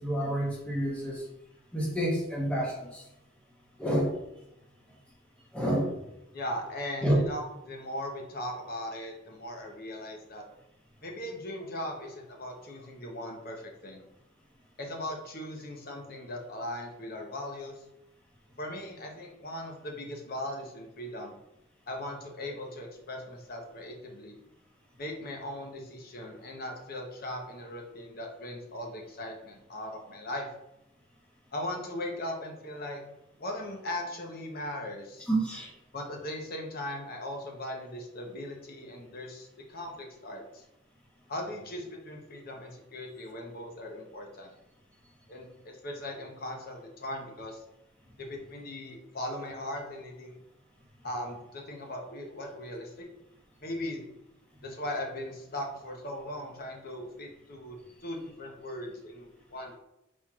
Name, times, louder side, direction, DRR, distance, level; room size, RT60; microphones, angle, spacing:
voice 1, 0.0-1.2 1.7-3.0 3.8-4.1 5.5-5.9 7.0-7.2 35.3-35.7, right 1 dB, 5° left, -4 dB, 0.9 m, -28 dB
voice 2, 6.3-10.4 11.0-14.0 14.8-17.8 18.6-21.4 21.9-24.4 25.0-30.5 31.5-33.0 33.4-35.3 35.9-40.6 41.3-44.5 45.3-47.6 48.2-50.4 51.0-53.1 53.6-54.0 54.6-59.8, left 1 dB, 45° left, 2 dB, 0.8 m, -39 dB
4.4 x 4.3 x 2.3 m, 0.86 s
head